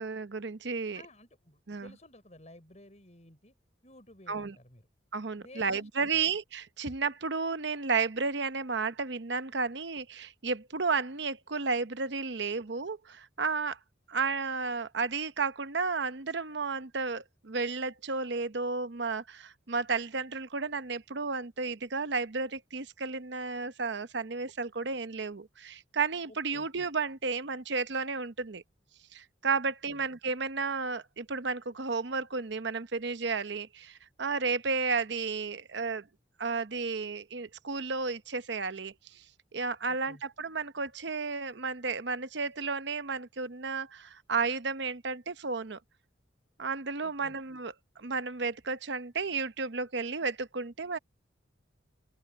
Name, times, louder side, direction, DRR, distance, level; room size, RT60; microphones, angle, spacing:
voice 1, 0.0-1.0 1.7-1.9 4.3-4.5 5.1-13.8 14.1-28.6 29.1-36.1 36.4-39.2 39.5-45.8 46.6-47.7 48.0-51.0, right 4 dB, 65° right, 0.8 m, -33 dB
voice 2, 0.9-3.6 3.8-4.8 5.4-6.2 26.3-26.7 29.9-30.0 39.9-40.2 47.0-47.4, left 1 dB, 35° left, 5.6 m, -54 dB
open air
head